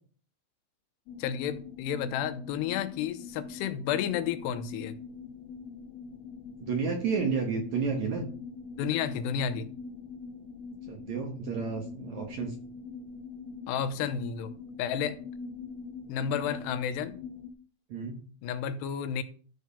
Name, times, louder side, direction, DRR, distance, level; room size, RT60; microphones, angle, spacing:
sound 1, 1.1-17.5, left 5 dB, 60° left, 2.0 m, -43 dB
voice 1, 1.2-5.0 8.8-9.7 13.7-14.5 14.8-15.2 16.1-17.2 18.4-19.2, left 8 dB, 85° left, 10 dB, 2.9 m, -31 dB
voice 2, 6.6-8.2 10.9-12.6 17.9-18.2, right 5 dB, 65° right, 3 dB, 1.9 m, -31 dB
13.0 x 4.7 x 6.8 m, 0.43 s
omnidirectional pair, 4.8 m